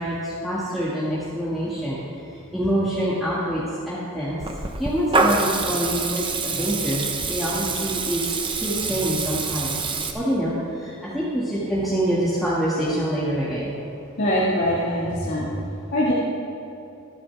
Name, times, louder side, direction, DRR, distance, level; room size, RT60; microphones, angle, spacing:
voice 1, 0.0-2.0 2.3-9.8 10.1-13.7, equal, ahead, -10 dB, 2.1 m, -26 dB
Water tap faucet / Liquid, 4.4-10.1, right 4 dB, 25° right, 0.9 m, -26 dB
voice 2, 14.2-15.5 15.9-16.1, equal, 55° left, -8 dB, 2.1 m, -22 dB
25.0 x 9.6 x 3.5 m, 2.7 s
head